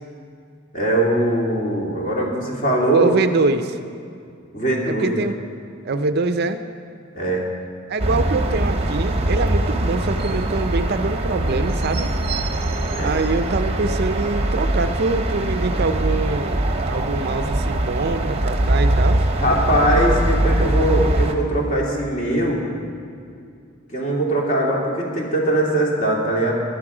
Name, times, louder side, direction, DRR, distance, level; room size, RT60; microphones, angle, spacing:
voice 1, 0.7-3.3 4.5-5.3 7.1-7.4 12.9-13.1 19.4-22.6 23.9-26.5, right 1 dB, 40° left, -3 dB, 2.5 m, -21 dB
voice 2, 2.9-3.8 4.9-5.3 5.8-6.6 7.9-12.1 13.0-19.2, right 3 dB, 50° right, 9 dB, 0.5 m, -24 dB
sound 1, 8.0-21.3, right 1 dB, 30° right, 0.8 m, -22 dB
14.5 x 11.0 x 4.9 m, 2.3 s
head